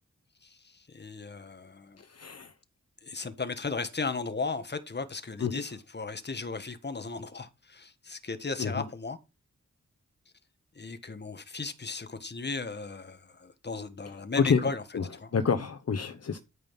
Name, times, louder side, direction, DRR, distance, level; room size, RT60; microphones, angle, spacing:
voice 1, 0.4-2.0 3.0-9.2 10.7-15.3, left 4 dB, 35° left, 1.6 m, -36 dB
voice 2, 2.1-2.5 5.4-5.6 8.6-8.7 14.4-14.6 14.9-15.0 15.3-16.4, left 6 dB, 55° left, 1.0 m, -28 dB
13.0 x 5.4 x 5.8 m
wide cardioid pair, 90°, 30 cm